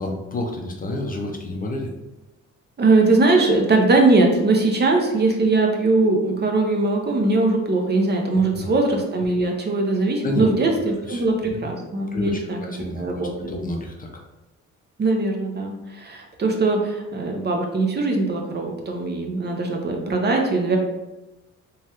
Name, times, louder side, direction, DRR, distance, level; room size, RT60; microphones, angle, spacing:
voice 1, 0.0-1.9 8.6-8.7 10.2-10.5 11.1-11.3 11.6-11.7 12.1-13.2 13.5-14.2, left 2 dB, 30° left, 1 dB, 0.5 m, -29 dB
voice 2, 2.8-12.6 13.0-13.5 15.0-20.8, right 3 dB, 35° right, 2 dB, 0.6 m, -20 dB
3.1 x 2.3 x 2.8 m, 1.0 s
cardioid pair, 90°, 30 cm